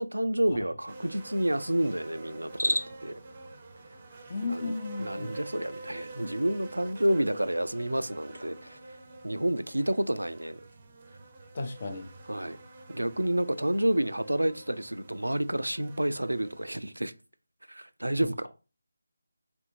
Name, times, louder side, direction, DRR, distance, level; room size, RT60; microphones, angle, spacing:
voice 1, 0.0-3.2 4.4-4.7 5.0-8.8 9.2-10.6 12.3-12.6 12.9-17.1 17.7-18.5, right 1 dB, 80° right, 0.3 m, -29 dB
sound 1, 0.9-16.7, right 2 dB, 30° right, 0.6 m, -47 dB
Cricket, 2.4-3.2, left 1 dB, 90° left, 0.4 m, -30 dB
voice 2, 4.3-5.3 11.5-12.1 18.2-18.5, left 3 dB, 40° left, 0.6 m, -34 dB
3.3 x 2.5 x 3.0 m
figure-of-eight pair, 160°, 0 cm